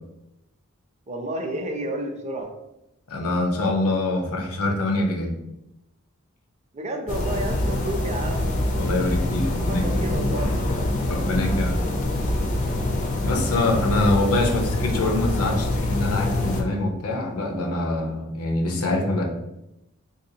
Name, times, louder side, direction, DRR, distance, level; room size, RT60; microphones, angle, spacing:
voice 1, 1.1-2.5 6.7-8.6 9.6-10.6, right 1 dB, 30° right, 2 dB, 0.4 m, -31 dB
voice 2, 3.1-5.3 8.8-10.1 11.1-11.8 13.2-19.2, left 2 dB, 85° left, 2 dB, 0.7 m, -24 dB
sound 1, 7.1-16.6, left 1 dB, 35° left, 0.4 m, -25 dB
3.5 x 2.7 x 2.7 m, 0.88 s
head